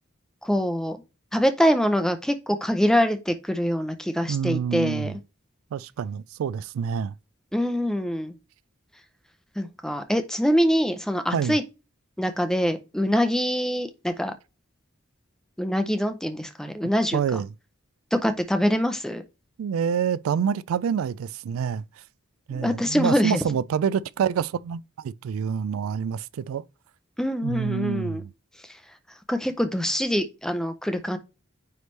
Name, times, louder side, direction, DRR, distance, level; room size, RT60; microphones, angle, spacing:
voice 1, 0.4-1.0 1.3-5.1 7.5-8.3 9.6-11.6 12.2-14.3 15.6-17.4 18.1-19.2 22.5-23.4 27.2-28.2 29.3-31.2, equal, 5° left, 0.6 m, -24 dB
voice 2, 4.3-5.2 5.7-7.1 11.3-11.6 17.1-17.5 19.6-21.8 22.5-26.6 27.4-28.3, right 7 dB, 80° right, 0.3 m, -27 dB
9.3 x 3.3 x 3.2 m
head